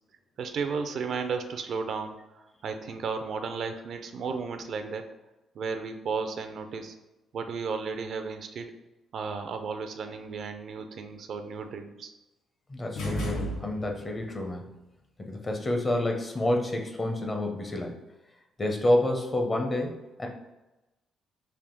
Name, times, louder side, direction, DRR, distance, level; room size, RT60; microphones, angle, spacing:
voice 1, 0.4-5.1 5.5-6.9 7.3-8.7 9.1-12.1, right 5 dB, 65° right, 8 dB, 0.4 m, -34 dB
voice 2, 12.7-14.8 15.2-18.0 18.6-20.3, left 1 dB, 30° left, 2 dB, 0.7 m, -28 dB
sound 1, 13.0-14.2, equal, 90° left, 1.0 m, -33 dB
3.4 x 2.5 x 3.8 m, 1.0 s
cardioid pair, 90°, 0 cm